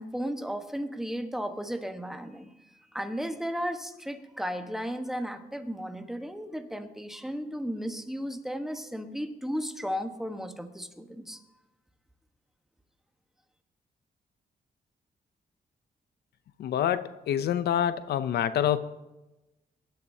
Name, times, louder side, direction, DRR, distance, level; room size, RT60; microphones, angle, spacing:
voice 1, 0.0-2.5 2.9-11.4, equal, ahead, 6 dB, 1.2 m, -34 dB
voice 2, 16.6-18.8, left 10 dB, 85° left, 13 dB, 0.6 m, -26 dB
23.5 x 11.5 x 2.8 m, 1.0 s
cardioid pair, 110°, 16 cm